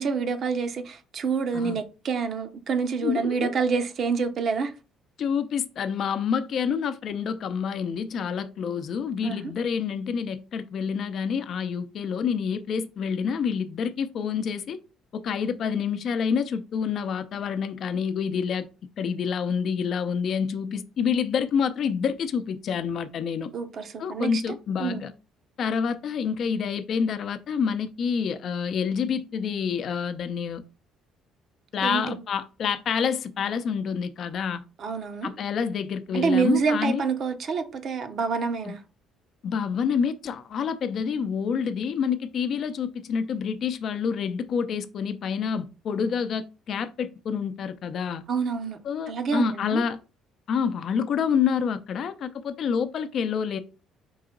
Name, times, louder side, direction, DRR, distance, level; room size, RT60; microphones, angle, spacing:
voice 1, 0.0-4.7 9.2-9.4 23.5-25.1 31.8-32.2 34.8-35.3 36.1-38.8 48.3-48.8 49.1-49.8, right 5 dB, 55° right, 0.8 m, -27 dB
voice 2, 3.0-3.5 5.2-14.8 15.1-18.7 19.0-23.5 24.0-25.1 25.6-30.6 31.7-34.6 35.2-37.0 38.6-38.7 39.4-48.2 48.8-50.0 50.5-53.6, left 6 dB, 60° left, 0.5 m, -28 dB
4.8 x 2.8 x 3.8 m
supercardioid pair, 75°, 0 cm